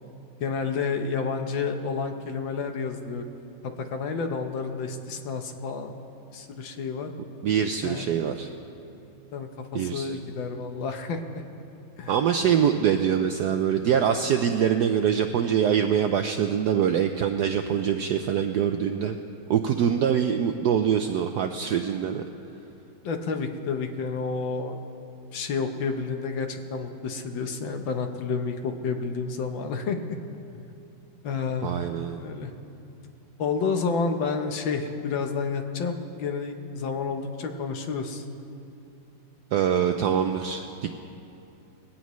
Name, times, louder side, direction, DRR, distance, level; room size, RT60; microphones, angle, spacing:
voice 1, 0.4-3.2 3.6-6.0 6.3-7.1 7.8-8.2 9.3-11.4 12.0-12.2 23.0-24.9 25.3-30.0 30.5-30.7 31.2-31.8 32.2-32.5 33.4-38.2, left 5 dB, 70° left, 6 dB, 1.6 m, -30 dB
voice 2, 7.4-8.5 9.7-10.1 12.1-19.2 19.5-22.2 31.6-32.2 39.5-40.9, right 8 dB, 75° right, 6 dB, 0.9 m, -24 dB
21.0 x 17.0 x 3.1 m, 2.7 s
omnidirectional pair, 2.3 m